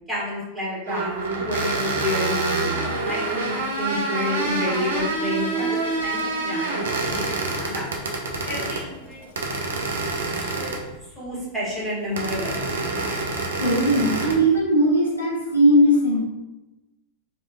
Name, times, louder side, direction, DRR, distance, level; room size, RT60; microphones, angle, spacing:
voice 1, 0.1-1.1 1.4-7.8 8.5-9.3 10.4-10.8 11.2-12.6, left 1 dB, 5° right, -8 dB, 1.0 m, -30 dB
sound 1, 0.9-8.9 9.4-11.0 12.2-14.4, right 3 dB, 65° right, 0.4 m, -27 dB
Mechanisms / Drill, 1.7-10.3, left 4 dB, 50° left, 0.4 m, -44 dB
voice 2, 13.4-16.2, right 1 dB, 80° left, -6 dB, 0.7 m, -19 dB
2.9 x 2.1 x 2.2 m, 1.0 s
figure-of-eight pair, 90°, 0 cm